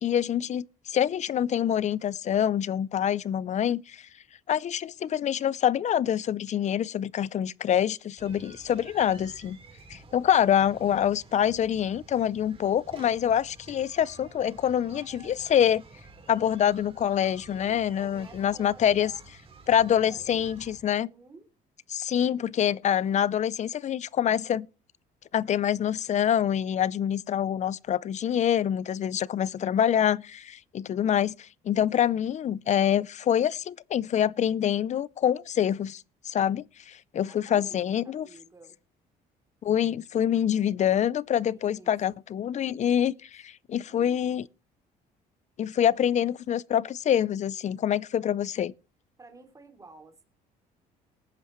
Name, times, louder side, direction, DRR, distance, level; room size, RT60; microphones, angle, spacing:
voice 1, 0.0-4.1 4.5-9.6 9.9-15.8 16.3-19.1 19.7-21.1 21.9-24.7 25.3-38.3 39.6-44.4 45.6-48.7, left 9 dB, 45° left, 0.5 m, -26 dB
sound 1, 8.2-20.8, right 3 dB, 35° right, 3.9 m, -51 dB
voice 2, 17.5-19.3 19.7-20.6 20.9-21.5 37.2-38.8 41.5-41.9 42.9-43.0 43.8-44.2 49.2-50.2, right 3 dB, 20° right, 3.1 m, -52 dB
19.5 x 9.9 x 3.1 m
cardioid pair, 110°, 17 cm